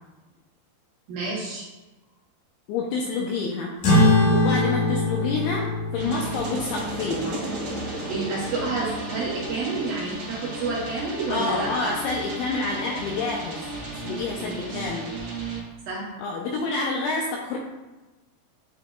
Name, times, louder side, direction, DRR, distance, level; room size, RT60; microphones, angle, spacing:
voice 1, 1.1-1.7 7.9-12.0 14.4-14.9 15.9-16.2, right 3 dB, 75° right, -5 dB, 2.2 m, -30 dB
voice 2, 2.7-3.7 4.3-7.4 11.3-13.6 14.0-15.1 16.2-17.6, left 3 dB, 85° left, -1 dB, 2.3 m, -28 dB
sound 1, 3.8-8.7, left 2 dB, 50° left, 2.9 m, -23 dB
sound 2, 5.9-15.6, right 2 dB, 45° right, 2.7 m, -34 dB
9.1 x 4.8 x 2.3 m, 1.1 s
omnidirectional pair, 5.0 m